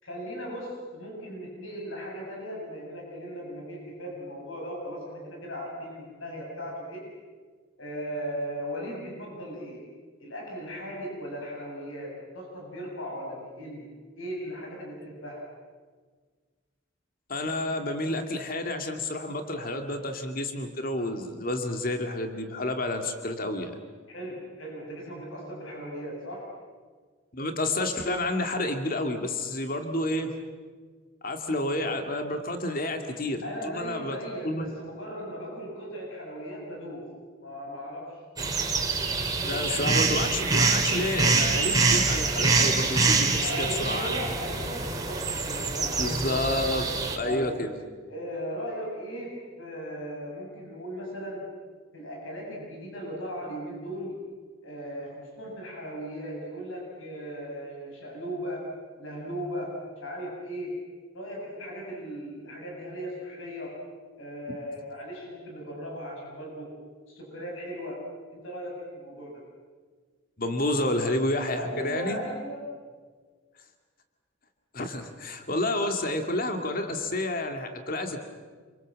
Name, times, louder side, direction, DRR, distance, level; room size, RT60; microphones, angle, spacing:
voice 1, 0.0-7.1 7.8-9.8 10.2-13.9 14.2-15.4 18.1-18.2 24.1-26.5 33.4-37.1 37.4-38.2 39.2-40.2 43.4-46.1 47.2-47.5 48.1-51.5 51.9-54.3 54.6-58.7 59.0-60.9 61.1-63.8 64.2-66.7 67.1-68.0 68.3-69.4 71.5-72.7, equal, 85° left, -1 dB, 7.8 m, -37 dB
voice 2, 17.3-23.8 27.3-30.3 31.2-34.2 34.4-34.6 39.4-44.4 46.0-46.9 47.1-47.7 70.4-72.2 74.7-78.2, left 1 dB, 45° left, 5 dB, 2.4 m, -30 dB
sound 1, 38.4-47.2, right 4 dB, 20° right, 2.5 m, -25 dB
27.5 x 25.0 x 7.6 m, 1.5 s
head